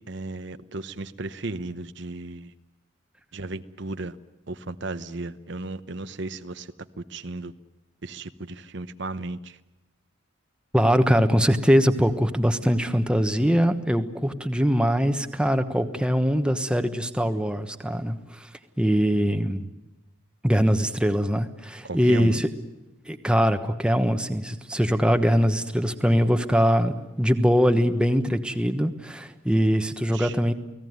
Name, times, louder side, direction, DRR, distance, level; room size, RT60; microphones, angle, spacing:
voice 1, 0.1-2.5 3.3-4.1 4.5-6.7 7.0-7.5 8.0-9.6 21.8-22.4 30.1-30.3, right 2 dB, 55° right, 11 dB, 1.0 m, -35 dB
voice 2, 10.7-18.5 18.8-19.7 20.4-22.5 23.1-30.5, equal, 5° right, 8 dB, 1.2 m, -22 dB
29.5 x 18.5 x 9.5 m, 1.0 s
head